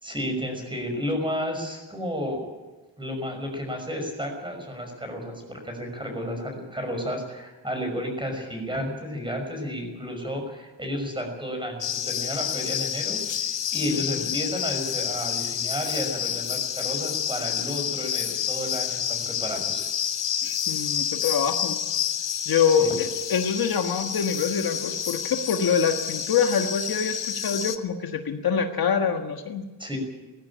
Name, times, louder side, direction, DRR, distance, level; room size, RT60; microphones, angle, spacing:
voice 1, 0.0-2.5 3.0-19.9 22.8-22.9 29.8-30.0, equal, 10° right, 4 dB, 6.0 m, -32 dB
sound 1, 11.8-27.8, left 9 dB, 65° left, 1.4 m, -29 dB
voice 2, 20.4-21.8 22.5-29.6, left 6 dB, 50° left, 4 dB, 1.6 m, -25 dB
19.0 x 15.5 x 8.7 m, 1.2 s
cardioid pair, 135°, 47 cm